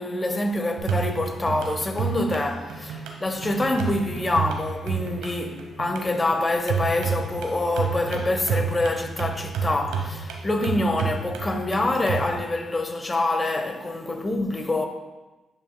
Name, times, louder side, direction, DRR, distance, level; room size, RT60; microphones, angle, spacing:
voice 1, 0.0-14.9, left 2 dB, 30° left, 1.0 m, -26 dB
sound 1, 0.8-12.3, right 6 dB, 85° right, 1.0 m, -30 dB
10.0 x 5.6 x 2.2 m
supercardioid pair, 55°, 0 cm